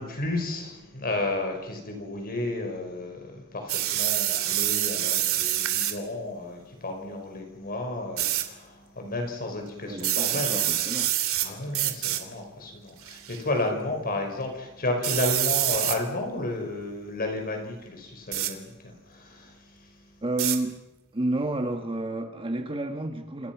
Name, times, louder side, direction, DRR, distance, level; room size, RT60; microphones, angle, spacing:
voice 1, 0.0-10.7 11.4-19.9, left 2 dB, 40° left, 5.3 m, -32 dB
sound 1, 3.7-6.0 8.2-8.4 10.0-11.5 11.7-12.2 13.0-13.4 15.0-16.0 18.3-18.5 20.4-20.6, right 13 dB, 65° right, 2.7 m, -26 dB
voice 2, 9.9-11.2 20.2-20.8 21.1-23.5, right 1 dB, 25° right, 1.5 m, -30 dB
28.0 x 28.0 x 6.1 m
head